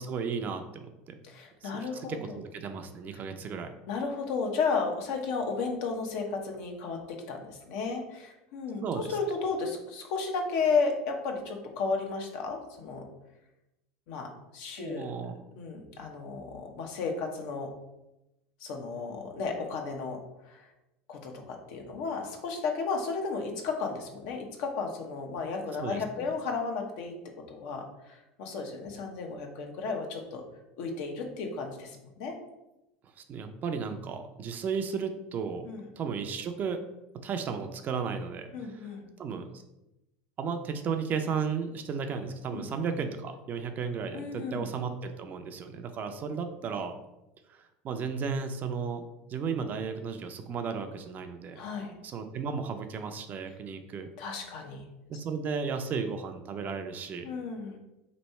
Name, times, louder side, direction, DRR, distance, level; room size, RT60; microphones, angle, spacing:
voice 1, 0.0-1.2 1.6-3.7 8.8-9.1 14.8-15.4 25.8-26.0 33.0-35.7 36.0-36.8 37.1-38.9 39.2-39.6 40.4-47.0 47.5-49.0 49.3-51.6 52.0-54.1 55.1-57.3, right 5 dB, 35° right, 7 dB, 0.4 m, -34 dB
voice 2, 1.2-2.2 3.9-13.0 14.1-15.1 15.5-17.7 18.6-20.7 21.1-27.2 27.5-30.4 30.8-32.4 35.7-35.9 38.5-39.1 42.5-42.7 44.1-44.7 51.6-51.9 54.2-54.8 57.2-57.8, left 4 dB, 65° left, 2 dB, 0.8 m, -33 dB
3.1 x 2.7 x 4.3 m, 0.93 s
supercardioid pair, 110°, 5 cm